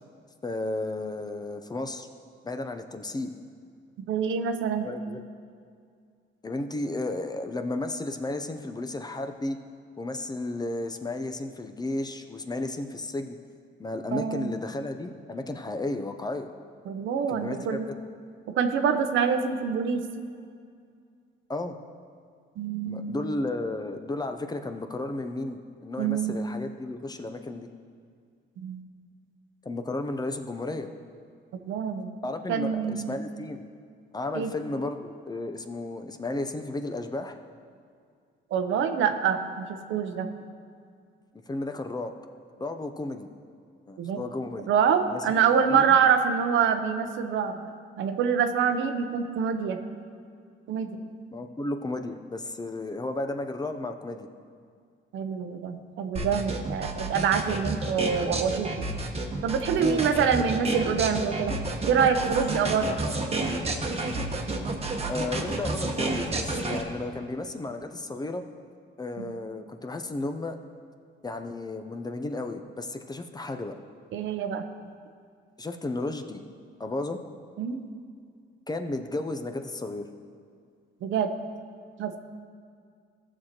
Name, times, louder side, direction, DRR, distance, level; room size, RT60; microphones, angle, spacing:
voice 1, 0.4-2.1 2.4-3.3 4.8-5.2 6.4-9.6 10.0-13.4 13.8-16.5 17.3-17.8 21.5-21.7 22.8-27.7 29.6-30.9 32.2-33.6 34.1-37.4 41.5-42.1 42.6-43.3 43.9-44.7 45.1-45.3 45.7-46.0 51.3-54.3 59.8-60.4 65.1-68.4 69.0-70.6 71.2-73.7 75.6-76.4 76.8-77.2 78.7-80.0, left 2 dB, 20° left, 7 dB, 0.6 m, -33 dB
voice 2, 4.1-4.9 14.1-14.5 16.9-17.9 18.5-20.0 22.6-23.1 26.0-26.4 28.6-28.8 31.7-32.1 32.5-33.2 34.3-34.5 38.5-40.3 44.0-44.2 44.7-47.6 48.0-49.8 50.7-51.0 55.1-58.9 59.4-61.6 61.9-63.0 69.2-69.3 74.1-74.7 77.6-77.8 81.0-81.3 82.0-82.2, right 7 dB, 75° right, 7 dB, 0.7 m, -26 dB
sound 1, 56.2-66.8, right 2 dB, 30° right, 1.1 m, -30 dB
15.0 x 6.4 x 2.9 m, 2.2 s
cardioid pair, 90°, 20 cm